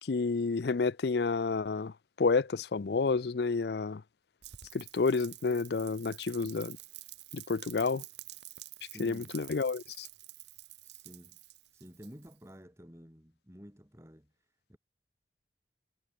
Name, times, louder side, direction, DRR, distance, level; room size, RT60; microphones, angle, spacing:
voice 1, 0.0-4.0 4.7-6.8 7.3-8.0 9.0-10.1, left 4 dB, 65° left, 0.5 m, -30 dB
Rain, 4.4-12.5, right 16 dB, 75° right, 1.2 m, -49 dB
voice 2, 8.8-9.4 10.8-11.4 11.7-14.3 14.7-14.8, equal, 15° right, 4.6 m, -51 dB
head